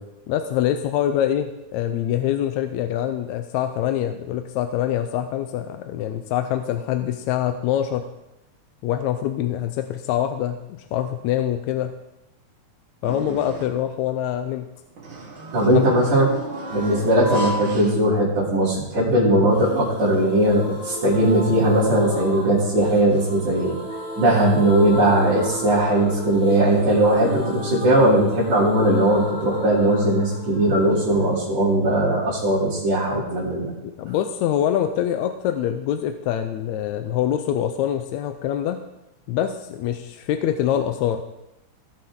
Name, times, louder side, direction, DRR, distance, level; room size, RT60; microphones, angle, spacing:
voice 1, 0.3-8.1 8.8-12.0 13.0-14.7 15.7-15.8 33.2-33.3 33.8-38.8 39.3-41.2, left 10 dB, 80° left, 7 dB, 1.9 m, -25 dB
sound 1, 13.0-13.9 15.0-18.6 19.0-19.1 20.1-20.2, right 1 dB, 45° right, 2.1 m, -33 dB
voice 2, 15.5-16.3 16.7-23.8 24.2-33.7, right 1 dB, 75° right, -12 dB, 4.7 m, -19 dB
sound 2, 19.5-33.2 33.4-33.5 33.7-33.8, left 1 dB, 60° left, 4.0 m, -34 dB
17.5 x 7.7 x 3.7 m, 0.90 s
omnidirectional pair, 3.4 m